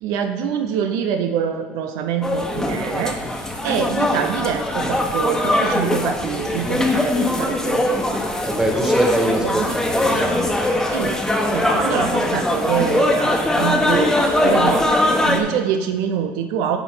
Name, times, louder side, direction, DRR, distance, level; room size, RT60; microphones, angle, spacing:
voice 1, 0.0-8.3 9.4-9.8 10.9-16.8, right 8 dB, 80° right, 7 dB, 0.6 m, -25 dB
sound 1, 2.2-15.4, left 1 dB, 10° left, 1.2 m, -21 dB
voice 2, 8.4-10.5, right 1 dB, 10° right, 1 dB, 1.9 m, -23 dB
9.9 x 4.5 x 5.6 m, 1.3 s
supercardioid pair, 95°, 6 cm